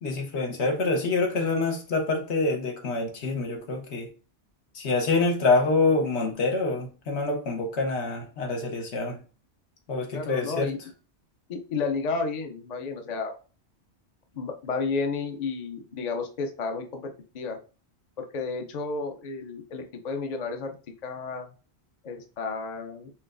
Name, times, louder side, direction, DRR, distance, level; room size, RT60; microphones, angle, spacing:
voice 1, 0.0-4.1 4.7-9.2 9.9-10.7, left 3 dB, 85° left, 3 dB, 1.2 m, -26 dB
voice 2, 10.1-10.8 11.5-13.3 14.3-17.6 18.2-20.7 21.0-21.5 22.0-23.1, left 4 dB, 45° left, 5 dB, 0.6 m, -32 dB
4.5 x 3.1 x 2.5 m, 0.35 s
omnidirectional pair, 1.1 m